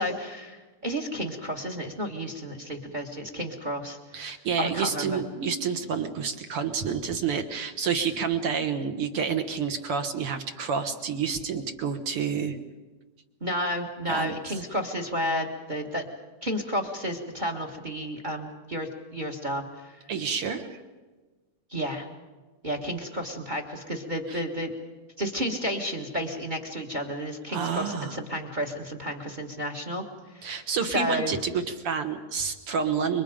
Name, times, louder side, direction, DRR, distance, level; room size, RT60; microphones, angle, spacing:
voice 1, 0.0-4.0 4.6-5.2 13.4-16.1 16.4-19.9 21.7-22.1 22.6-24.7 25.2-30.0 30.3-30.6 30.9-31.3, equal, 20° right, 4 dB, 1.2 m, -31 dB
voice 2, 4.1-12.6 14.1-14.6 20.1-20.8 24.3-24.4 27.5-28.2 30.4-33.2, right 6 dB, 55° right, 7 dB, 1.8 m, -29 dB
28.0 x 24.0 x 5.1 m, 1.3 s
omnidirectional pair, 3.7 m